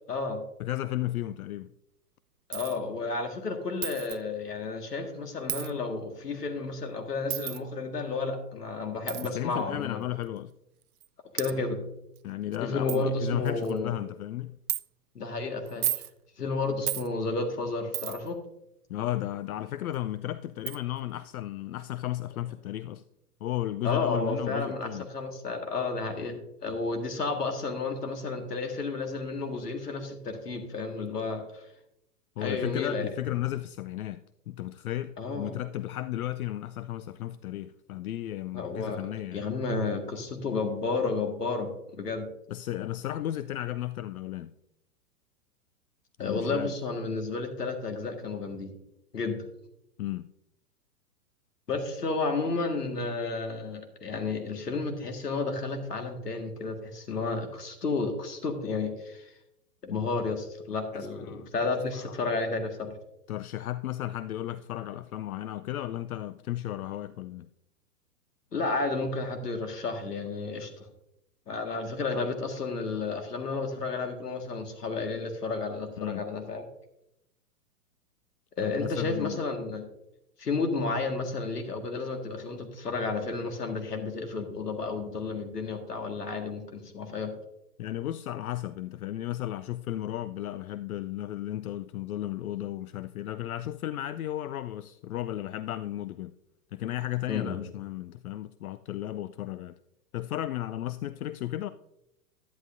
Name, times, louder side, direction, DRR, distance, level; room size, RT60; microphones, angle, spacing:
voice 1, 0.1-0.4 2.5-10.0 11.3-11.8 12.6-13.9 15.2-15.9 16.4-18.4 23.8-31.6 32.4-33.1 35.2-35.5 38.5-42.3 46.2-48.7 49.1-49.4 51.7-59.3 59.8-62.9 68.5-70.8 71.5-76.7 78.6-79.8 80.4-87.3 97.3-97.6, left 3 dB, 90° left, 1.8 m, -32 dB
voice 2, 0.6-1.7 9.2-10.5 12.2-14.6 18.9-23.0 23.4-25.1 32.4-39.5 42.5-44.5 46.2-46.7 50.0-50.3 60.9-61.5 61.9-62.2 63.3-67.5 76.0-76.2 78.6-79.4 87.8-96.3 96.7-99.7 100.1-101.7, left 13 dB, 65° left, 0.5 m, -34 dB
Coin (dropping), 2.5-2.8 3.8-4.2 5.5-5.7 7.3-7.6 9.1-9.3 10.2-10.3 11.0-11.1 11.4-11.5 12.2-12.3 12.5-12.6 12.9-13.0 13.5-13.8 14.7-14.8 15.7-16.1 16.9-17.1 17.9-18.3 19.9-20.0 20.7-20.8, right 14 dB, 70° right, 0.6 m, -32 dB
11.0 x 10.5 x 2.6 m
hypercardioid pair, 120°, 46 cm